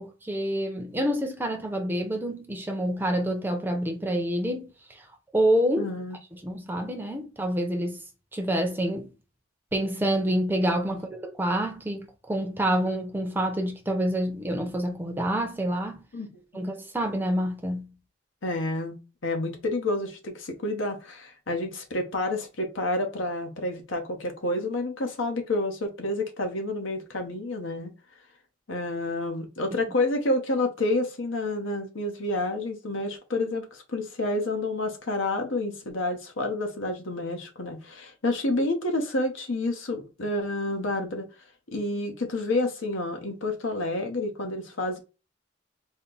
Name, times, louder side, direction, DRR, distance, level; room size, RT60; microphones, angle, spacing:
voice 1, 0.0-4.7 5.3-5.9 6.4-8.0 8.3-9.1 9.7-16.1 16.5-17.9, right 1 dB, 10° right, 0.5 m, -27 dB
voice 2, 5.8-6.2 10.9-11.0 16.1-16.6 18.4-27.9 28.7-41.3 41.7-45.0, left 2 dB, 75° left, 1.0 m, -29 dB
4.2 x 2.1 x 3.8 m
head